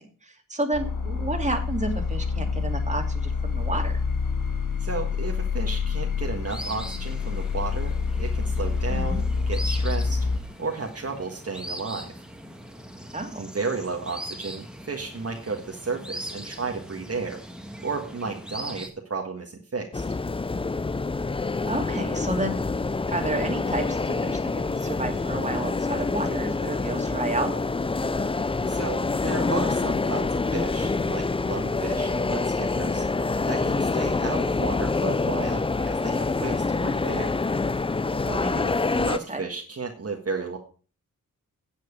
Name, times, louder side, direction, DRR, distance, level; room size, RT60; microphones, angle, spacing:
voice 1, 0.0-4.0 8.9-9.2 13.1-13.4 21.4-22.6 23.1-27.6 38.3-38.8 39.3-39.4, right 2 dB, 20° right, 3 dB, 2.3 m, -31 dB
sound 1, 0.7-10.4, left 5 dB, 65° left, 1.4 m, -27 dB
voice 2, 4.8-10.3 10.6-12.1 13.4-17.4 17.8-20.1 28.6-33.1 33.4-37.3 38.9-40.6, right 4 dB, 45° right, 1 dB, 1.6 m, -33 dB
sound 2, 6.5-18.9, equal, ahead, 1.7 m, -40 dB
sound 3, 19.9-39.2, left 3 dB, 15° left, 0.4 m, -26 dB
9.9 x 7.6 x 5.2 m, 0.38 s
wide cardioid pair, 85°, 35 cm